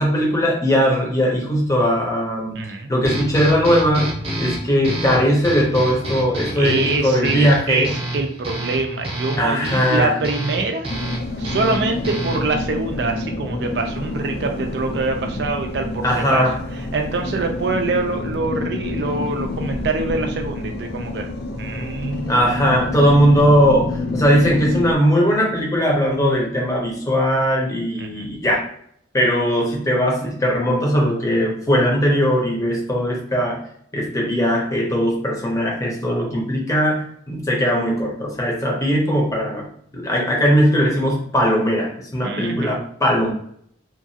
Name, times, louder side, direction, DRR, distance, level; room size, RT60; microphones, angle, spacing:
voice 1, 0.0-2.6 2.9-7.9 9.4-10.2 16.0-16.6 22.3-28.7 29.1-33.6 33.9-39.7 39.9-43.3, equal, 15° left, -2 dB, 0.7 m, -19 dB
voice 2, 2.6-2.9 6.5-10.9 11.4-16.1 16.3-16.5 16.9-21.3 21.6-23.1 28.0-28.3 42.2-42.8, right 3 dB, 60° right, 5 dB, 0.4 m, -25 dB
sound 1, 3.0-12.6, right 1 dB, 30° right, 0.7 m, -29 dB
sound 2, 10.9-24.9, left 2 dB, 55° left, 0.4 m, -28 dB
2.8 x 2.4 x 2.7 m, 0.66 s
head